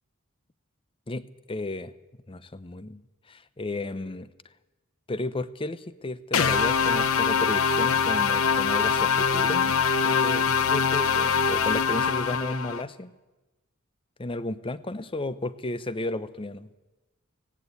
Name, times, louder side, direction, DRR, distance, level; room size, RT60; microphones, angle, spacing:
voice 1, 1.1-1.9 2.3-3.0 3.3-4.3 5.1-9.7 10.0-13.1 14.2-16.7, left 2 dB, 25° left, 15 dB, 0.8 m, -33 dB
sound 1, 6.3-12.8, left 6 dB, 70° left, 1.0 m, -23 dB
17.5 x 17.5 x 8.5 m, 1.1 s
head